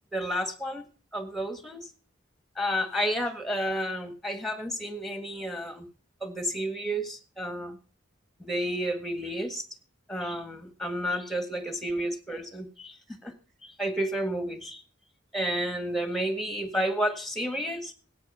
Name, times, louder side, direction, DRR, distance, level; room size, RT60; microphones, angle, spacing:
voice 1, 0.1-0.8 1.1-1.9 2.6-5.9 6.2-7.8 8.4-9.6 10.1-13.3 13.6-14.8 15.3-17.9, equal, ahead, 9 dB, 1.6 m, -31 dB
15.0 x 8.9 x 5.5 m, 0.38 s
head